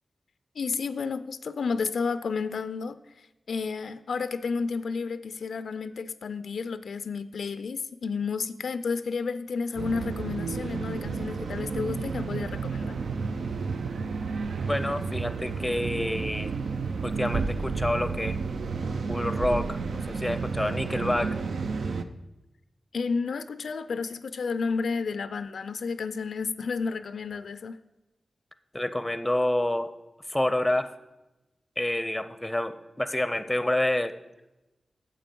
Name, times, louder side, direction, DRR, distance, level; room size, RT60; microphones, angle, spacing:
voice 1, 0.6-3.0 3.5-13.0 22.9-27.8, left 5 dB, 85° left, 13 dB, 0.4 m, -31 dB
sound 1, 9.8-22.0, right 4 dB, 85° right, 0.5 m, -31 dB
voice 2, 14.6-16.5 17.0-18.3 19.1-21.4 28.7-29.9 30.3-30.9 31.8-34.1, left 1 dB, 10° left, 12 dB, 0.6 m, -28 dB
9.0 x 7.4 x 5.3 m, 1.0 s
wide cardioid pair, 100°, 0 cm